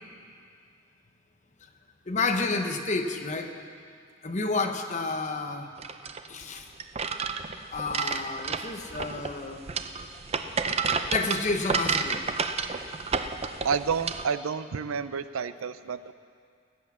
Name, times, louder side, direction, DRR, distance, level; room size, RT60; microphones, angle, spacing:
voice 1, 2.1-3.5 4.2-5.7 6.3-6.7 7.7-9.6 11.1-12.2, left 3 dB, 35° left, 5 dB, 1.0 m, -30 dB
sound 1, 5.8-14.3, right 5 dB, 30° right, 0.5 m, -31 dB
voice 2, 13.6-16.1, right 6 dB, 85° right, 13 dB, 0.5 m, -29 dB
19.0 x 8.1 x 7.4 m, 2.3 s
head